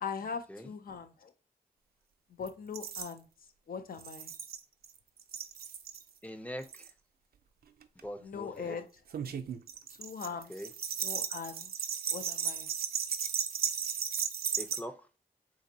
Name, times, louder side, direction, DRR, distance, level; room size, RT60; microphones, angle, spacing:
voice 1, 0.0-1.3 2.4-3.3 3.7-4.3 8.2-8.9 10.0-10.5 11.0-11.7 12.1-12.7, left 6 dB, 65° left, 0.5 m, -40 dB
sound 1, 2.5-2.6 2.7-3.1 4.0-4.9 5.2-6.0 6.6-6.9 7.8-8.0 9.1-14.8, right 7 dB, 70° right, 0.4 m, -35 dB
voice 2, 6.2-6.9 8.0-8.8 10.5-10.7 14.6-14.9, equal, 10° left, 0.5 m, -42 dB
3.9 x 2.5 x 2.6 m
wide cardioid pair, 75°, 16 cm